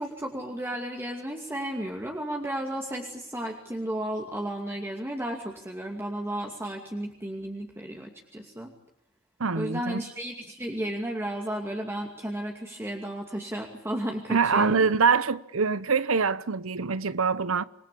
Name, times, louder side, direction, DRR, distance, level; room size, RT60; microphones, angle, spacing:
voice 1, 0.0-8.7 9.5-14.9, right 1 dB, 10° right, 2.5 m, -33 dB
voice 2, 9.4-10.0 14.3-17.6, right 5 dB, 85° right, 0.9 m, -24 dB
27.0 x 20.0 x 8.6 m
head